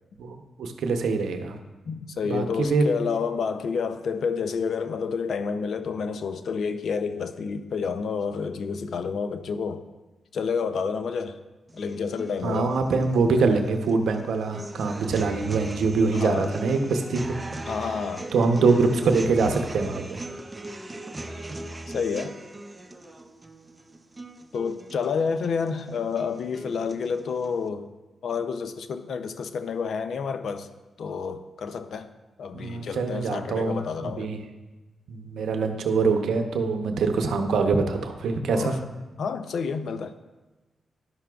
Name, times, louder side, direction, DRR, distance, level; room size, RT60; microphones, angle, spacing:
voice 1, 0.2-1.6 2.2-2.9 12.4-17.4 17.7-17.9 18.3-20.3 32.5-34.4 35.1-38.8, right 4 dB, 80° right, 6 dB, 0.7 m, -24 dB
voice 2, 1.9-9.8 10.3-11.4 11.7-12.8 16.1-16.5 17.7-18.3 21.9-22.4 24.5-27.9 28.2-30.7 31.0-32.1 32.4-34.3 38.5-38.8 39.2-40.1, left 5 dB, 70° left, 10 dB, 0.5 m, -29 dB
sound 1, 11.7-27.7, right 2 dB, 25° right, 0.7 m, -40 dB
11.0 x 5.8 x 2.3 m, 1.2 s
supercardioid pair, 50°, 0 cm